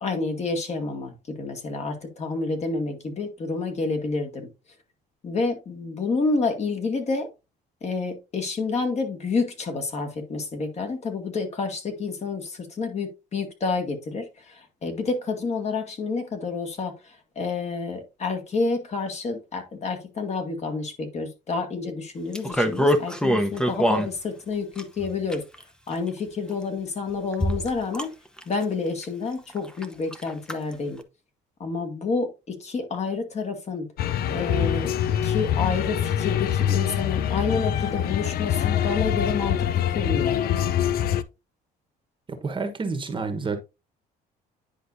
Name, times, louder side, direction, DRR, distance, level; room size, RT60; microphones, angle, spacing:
voice 1, 0.0-4.5 5.2-7.3 7.8-25.4 25.9-28.1 28.5-31.0 31.6-33.9 34.3-34.9 35.2-40.4, left 4 dB, 40° left, 2.0 m, -29 dB
sound 1, 22.3-24.1 24.8-25.6 26.5-26.6 27.3-28.1 28.4-28.6 29.0-29.1 29.5-29.9 30.1-30.5 31.0-31.1, equal, 5° left, 0.8 m, -23 dB
sound 2, 34.0-41.2, left 10 dB, 65° left, 0.6 m, -24 dB
voice 2, 42.3-43.6, right 4 dB, 30° right, 1.2 m, -29 dB
9.9 x 4.9 x 2.7 m
cardioid pair, 110°, 17 cm